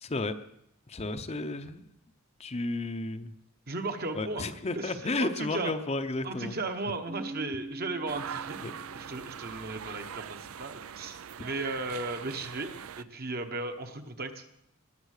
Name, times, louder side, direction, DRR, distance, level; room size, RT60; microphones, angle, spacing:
voice 1, 0.0-0.3 0.9-1.8 2.4-3.3 4.1-6.6 8.6-8.7, left 2 dB, 30° left, 9 dB, 0.7 m, -32 dB
voice 2, 3.7-4.5 4.7-5.7 6.2-12.7 13.0-14.4, right 3 dB, 50° right, 6 dB, 1.2 m, -36 dB
Keyboard (musical), 7.1-9.7, right 2 dB, 20° right, 0.8 m, -43 dB
sound 1, 8.1-13.0, right 8 dB, 90° right, 0.5 m, -42 dB
19.5 x 7.4 x 6.6 m, 0.76 s
head